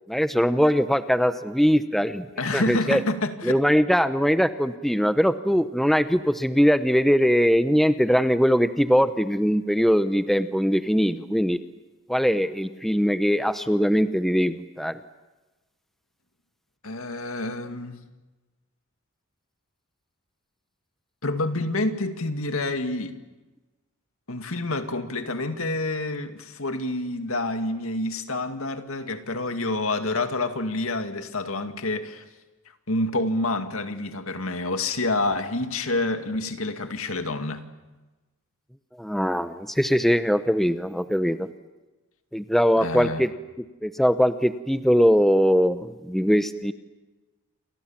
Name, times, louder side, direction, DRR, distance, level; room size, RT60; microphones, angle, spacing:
voice 1, 0.1-2.3 2.5-3.0 3.4-11.6 12.1-15.0 39.0-41.5 42.3-43.3 43.8-46.7, equal, ahead, 0.8 m, -21 dB
voice 2, 2.4-3.6 16.8-18.0 21.2-23.1 24.3-32.3 32.9-37.6 42.8-43.2, left 2 dB, 75° left, 2.2 m, -28 dB
29.5 x 24.0 x 7.4 m
head